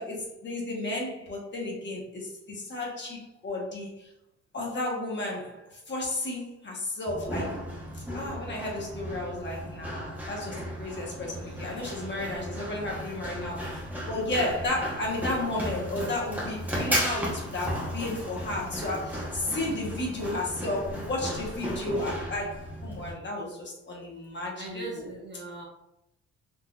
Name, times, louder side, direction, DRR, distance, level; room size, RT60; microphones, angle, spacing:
voice 1, 0.0-4.1 4.5-7.7 7.9-25.1, left 2 dB, 35° left, -2 dB, 1.1 m, -33 dB
Run, 7.1-23.1, equal, 5° right, 0.9 m, -35 dB
voice 2, 24.5-25.7, right 2 dB, 35° right, -3 dB, 1.1 m, -39 dB
3.9 x 2.6 x 2.3 m, 0.83 s
cardioid pair, 90°, 30 cm